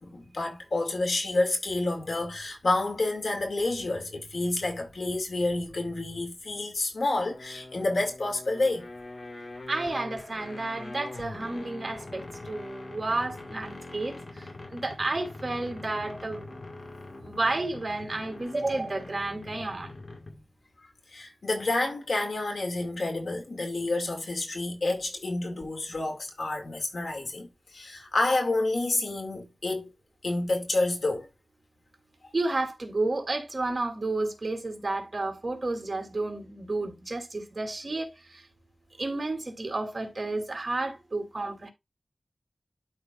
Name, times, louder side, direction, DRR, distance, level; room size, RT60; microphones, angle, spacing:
voice 1, 0.0-8.9 21.1-29.9 30.2-31.3, left 2 dB, 85° left, 2.2 m, -29 dB
sound 1, 7.1-20.5, left 2 dB, 60° left, 1.9 m, -43 dB
voice 2, 9.7-14.2 14.7-16.5 17.2-19.9 32.3-38.1 39.0-41.7, right 2 dB, 50° right, 2.9 m, -31 dB
12.0 x 4.5 x 2.4 m
wide cardioid pair, 70°, 0 cm